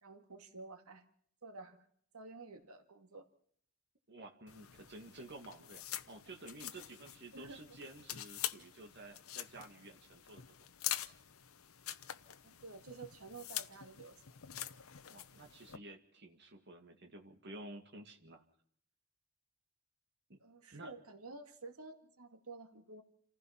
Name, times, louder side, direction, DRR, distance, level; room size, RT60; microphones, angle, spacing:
voice 1, 0.0-1.1 1.4-1.9 2.1-3.3 7.3-7.6 12.4-14.4 20.4-23.0, right 3 dB, 80° right, 5 dB, 2.3 m, -51 dB
voice 2, 4.1-10.4 15.1-18.4 20.3-20.4 20.7-20.9, right 2 dB, 50° right, 3 dB, 2.1 m, -52 dB
sound 1, 4.5-15.8, left 12 dB, 75° left, 0.9 m, -45 dB
29.0 x 15.5 x 5.9 m, 0.64 s
head